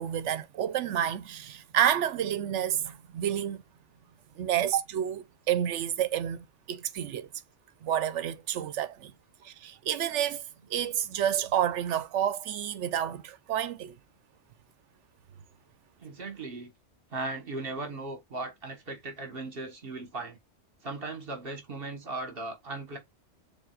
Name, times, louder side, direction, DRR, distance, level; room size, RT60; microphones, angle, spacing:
voice 1, 0.0-3.6 4.4-7.3 7.8-9.1 9.4-10.4 10.7-14.0, right 10 dB, 85° right, 1.0 m, -29 dB
voice 2, 16.0-16.7 17.1-20.4 20.8-23.0, right 2 dB, 55° right, 1.6 m, -37 dB
7.2 x 2.7 x 2.4 m
omnidirectional pair, 1.2 m